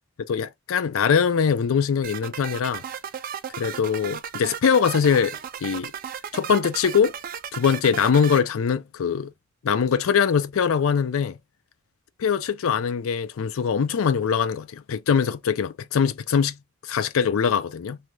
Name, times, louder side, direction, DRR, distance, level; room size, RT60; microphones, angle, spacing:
voice 1, 0.3-2.8 3.6-5.9 6.3-7.1 7.5-9.3 9.6-11.4 12.2-16.6 16.8-18.0, left 6 dB, 70° left, 0.4 m, -22 dB
sound 1, 2.0-8.4, right 8 dB, 45° right, 0.3 m, -35 dB
2.7 x 2.3 x 3.0 m
head